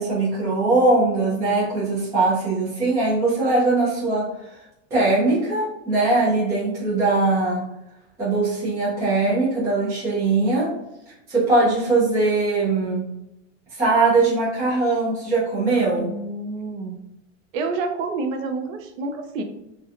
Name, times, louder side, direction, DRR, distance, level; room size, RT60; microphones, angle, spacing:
voice 1, 0.0-4.5 4.9-7.6 8.2-10.7 11.3-13.1 13.8-16.1, right 3 dB, 10° right, -10 dB, 0.4 m, -21 dB
voice 2, 16.0-17.0 17.5-19.4, right 3 dB, 80° right, 6 dB, 0.6 m, -28 dB
2.8 x 2.3 x 2.4 m, 0.87 s
supercardioid pair, 180°, 39 cm